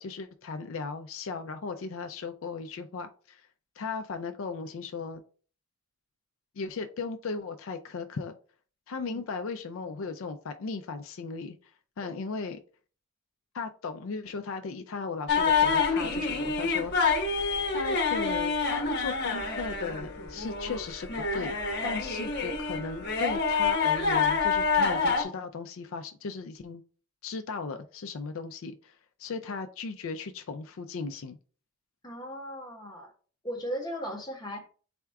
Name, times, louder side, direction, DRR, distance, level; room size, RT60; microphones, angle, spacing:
voice 1, 0.0-3.5 3.8-5.2 6.6-8.4 8.9-11.7 12.0-12.6 13.5-17.2 17.7-21.6 21.8-26.8 27.2-31.4, left 4 dB, 65° left, 7 dB, 0.4 m, -37 dB
sound 1, 15.3-25.2, left 5 dB, 50° left, 1.0 m, -27 dB
voice 2, 32.0-33.1 33.4-34.7, equal, 20° left, 1 dB, 0.9 m, -37 dB
4.2 x 2.4 x 4.5 m, 0.39 s
head